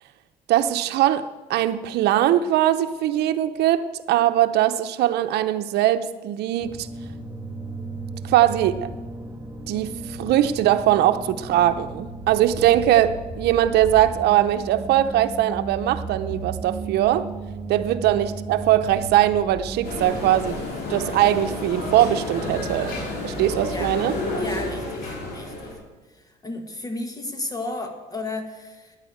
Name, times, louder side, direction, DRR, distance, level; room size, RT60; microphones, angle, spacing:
voice 1, 0.5-6.9 8.2-8.9 9.7-17.3 17.7-20.6 20.9-22.9 23.2-24.1, right 12 dB, 75° right, 0.8 m, -21 dB
sound 1, 6.6-20.0, right 3 dB, 15° right, 1.5 m, -35 dB
sound 2, 19.8-25.7, left 2 dB, 70° left, 5.2 m, -30 dB
voice 2, 24.4-25.7 26.4-29.0, left 2 dB, 20° left, 1.6 m, -33 dB
9.9 x 9.1 x 8.0 m
cardioid pair, 110°, 17 cm